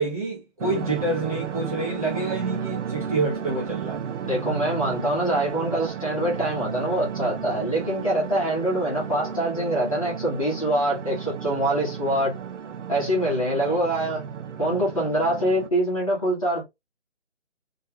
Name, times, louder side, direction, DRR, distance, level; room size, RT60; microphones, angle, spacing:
voice 1, 0.0-4.0 13.6-13.8, right 2 dB, 30° right, 0.7 m, -28 dB
sound 1, 0.6-15.7, right 7 dB, 80° right, 0.6 m, -33 dB
voice 2, 4.2-12.4 12.9-14.2 14.6-16.6, right 1 dB, 30° left, 0.8 m, -24 dB
2.4 x 2.2 x 2.7 m
hypercardioid pair, 175°, 35 cm